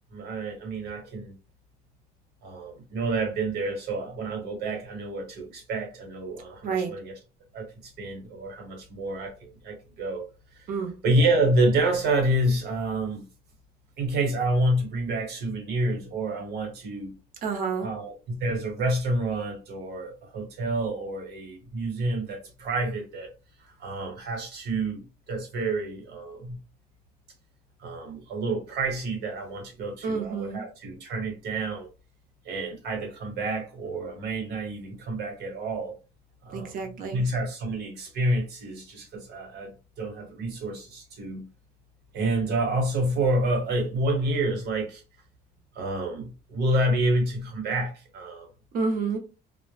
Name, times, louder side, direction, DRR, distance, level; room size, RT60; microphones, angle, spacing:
voice 1, 0.1-1.3 2.4-7.1 7.5-7.7 8.0-10.3 10.5-10.7 11.0-13.2 14.0-17.2 17.8-23.3 23.6-26.6 27.8-31.9 32.4-35.9 36.4-36.8 37.1-39.7 40.0-41.4 42.1-45.0 45.7-48.5, right 2 dB, 75° right, 1.0 m, -28 dB
voice 2, 17.4-17.9 30.0-30.6 36.5-37.2 48.7-49.2, right 5 dB, 55° right, 0.7 m, -29 dB
2.1 x 2.0 x 3.0 m
cardioid pair, 110°, 17 cm